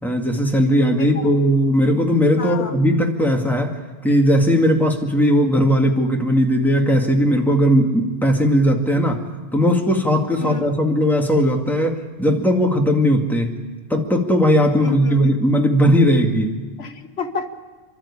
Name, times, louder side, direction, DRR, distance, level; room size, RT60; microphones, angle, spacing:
voice 1, 0.0-9.2 9.5-13.6 13.9-16.6, equal, ahead, 1 dB, 2.1 m, -18 dB
voice 2, 1.0-1.3 2.4-2.8 10.4-10.6 14.8-15.3 16.8-17.5, left 4 dB, 80° left, 7 dB, 1.4 m, -30 dB
29.0 x 12.5 x 8.6 m, 1.3 s
omnidirectional pair, 1.1 m